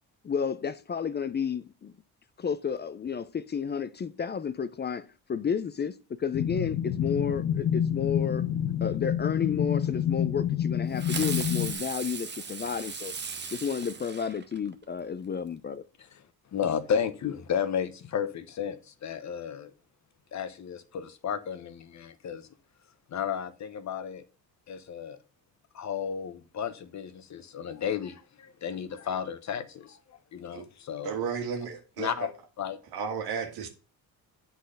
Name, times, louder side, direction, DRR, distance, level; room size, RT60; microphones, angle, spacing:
voice 1, 0.2-1.9 2.4-8.4 8.8-13.1 13.5-15.8, left 6 dB, 30° left, 0.4 m, -31 dB
sound 1, 6.3-11.7, left 10 dB, 75° left, 1.0 m, -28 dB
Fireworks, 11.0-14.8, right 5 dB, 30° right, 1.0 m, -37 dB
voice 2, 16.5-19.7 20.3-22.5 23.1-24.2 24.7-25.2 25.7-31.2 32.0-32.3 32.6-32.8, left 8 dB, 50° left, 1.0 m, -33 dB
voice 3, 31.0-32.3 32.9-33.7, right 6 dB, 90° right, 1.7 m, -33 dB
8.0 x 4.2 x 6.4 m
cardioid pair, 120°, 36 cm